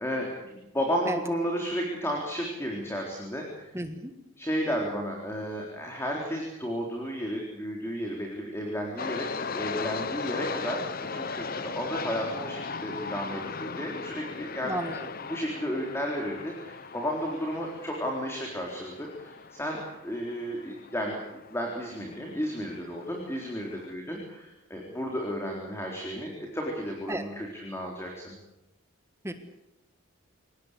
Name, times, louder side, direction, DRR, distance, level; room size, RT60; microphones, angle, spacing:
voice 1, 0.0-3.7 4.4-9.3 9.5-14.8 15.3-21.2 21.5-28.3, equal, 10° left, 0 dB, 4.0 m, -33 dB
voice 2, 3.7-4.1 14.6-15.1 27.1-27.2 29.2-29.3, right 1 dB, 15° right, 7 dB, 1.6 m, -32 dB
sound 1, 9.0-23.9, left 5 dB, 45° left, 0.9 m, -38 dB
27.5 x 18.0 x 8.3 m, 0.91 s
head